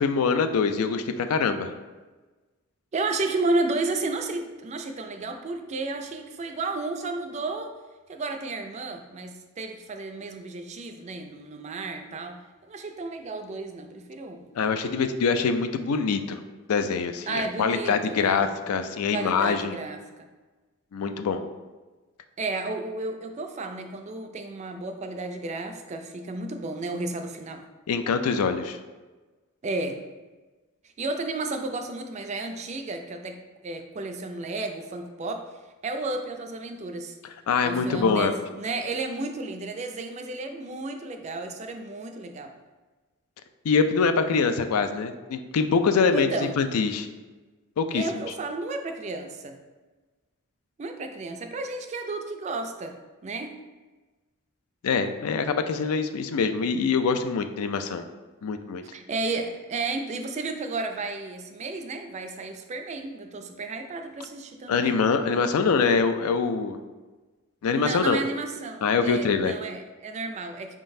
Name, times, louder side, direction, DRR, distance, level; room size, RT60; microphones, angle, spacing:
voice 1, 0.0-1.7 14.6-16.4 16.7-19.8 20.9-21.4 27.9-28.8 37.5-38.3 43.6-46.3 46.6-47.1 47.8-48.0 54.8-58.0 58.4-58.8 64.7-66.8 67.6-68.2 68.8-69.5, left 5 dB, 90° left, 8 dB, 0.4 m, -24 dB
voice 2, 2.9-7.8 8.1-12.4 12.7-14.4 17.3-18.5 19.1-20.3 22.4-27.6 29.6-30.0 31.0-35.5 35.8-37.2 37.6-42.5 46.1-46.6 47.9-49.6 50.8-53.0 53.2-53.6 58.9-65.0 67.7-70.8, right 3 dB, 30° right, 5 dB, 0.3 m, -32 dB
4.8 x 3.8 x 2.6 m, 1.3 s
head